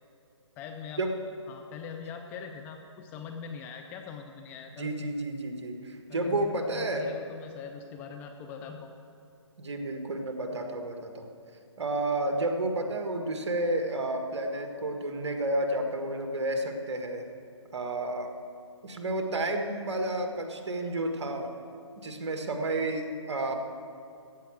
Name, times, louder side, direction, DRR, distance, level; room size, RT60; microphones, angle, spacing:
voice 1, 0.6-5.1 6.1-8.9 10.5-10.8, left 6 dB, 10° left, 4 dB, 0.4 m, -43 dB
voice 2, 4.8-7.1 9.6-11.3 11.8-17.2 17.7-18.3 18.8-21.5 22.0-23.5, right 1 dB, 65° right, 5 dB, 1.6 m, -31 dB
15.0 x 5.7 x 7.6 m, 2.6 s
figure-of-eight pair, 145°, 16 cm